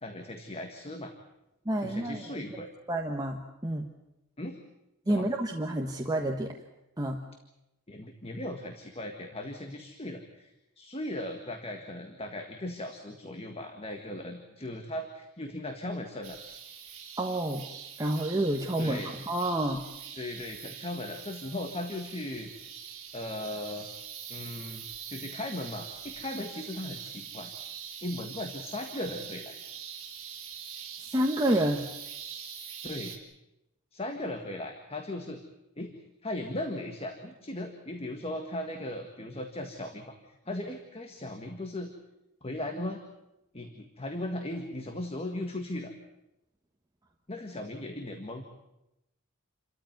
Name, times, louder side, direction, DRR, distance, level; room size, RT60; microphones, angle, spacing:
voice 1, 0.0-1.1 1.8-2.7 4.4-4.6 5.1-5.3 7.9-16.4 18.8-19.1 20.1-22.5 23.1-23.9 24.3-27.5 28.0-29.6 32.8-33.2 33.9-35.4 35.8-35.9 36.2-41.9 42.4-43.0 43.5-45.9 47.3-48.4, left 1 dB, 25° left, 4 dB, 1.7 m, -37 dB
voice 2, 1.6-2.4 2.9-3.9 5.1-6.5 7.0-7.2 17.2-17.7 18.0-19.8 31.1-31.9, right 1 dB, 15° right, 2 dB, 1.4 m, -29 dB
sound 1, 16.2-33.2, right 8 dB, 60° right, 3.9 m, -43 dB
28.5 x 13.5 x 9.5 m, 0.91 s
head